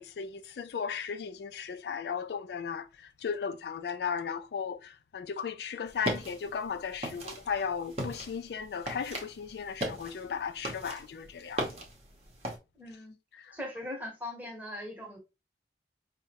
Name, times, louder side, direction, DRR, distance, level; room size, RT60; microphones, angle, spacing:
voice 1, 0.0-2.9 3.2-11.6, left 6 dB, 65° left, 0.3 m, -36 dB
sound 1, 5.9-12.6, right 1 dB, 35° right, 0.8 m, -38 dB
voice 2, 12.7-13.2 13.5-15.2, left 1 dB, 10° right, 0.9 m, -40 dB
4.7 x 2.1 x 2.8 m
head